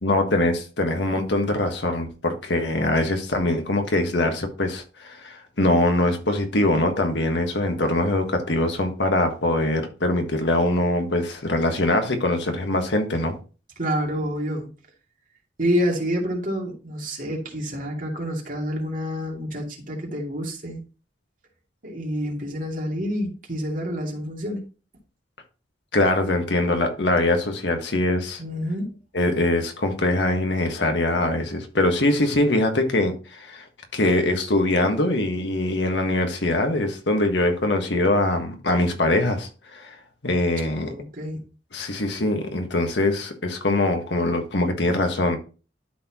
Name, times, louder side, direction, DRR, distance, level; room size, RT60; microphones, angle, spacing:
voice 1, 0.0-13.4 25.9-28.4 29.1-33.6 33.9-39.9 40.2-40.9 41.7-45.4, left 2 dB, 85° left, 1.5 m, -23 dB
voice 2, 13.8-14.7 15.6-20.8 21.8-24.6 28.4-28.9 40.8-41.4, equal, 50° right, 2.5 m, -28 dB
12.0 x 4.3 x 2.9 m
head